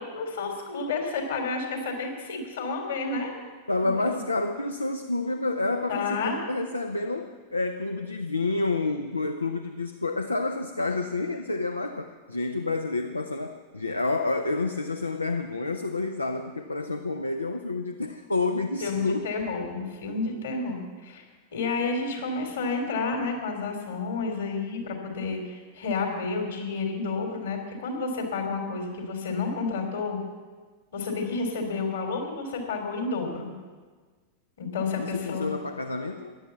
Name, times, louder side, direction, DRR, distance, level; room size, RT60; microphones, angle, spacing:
voice 1, 0.0-3.4 3.8-4.2 5.9-6.4 18.8-21.2 21.5-30.2 30.9-33.5 34.6-35.5, left 4 dB, 65° left, 3 dB, 3.3 m, -30 dB
voice 2, 3.7-19.2 35.0-36.4, left 3 dB, 80° left, 7 dB, 0.7 m, -29 dB
14.5 x 10.5 x 7.1 m, 1.4 s
figure-of-eight pair, 90°, 0 cm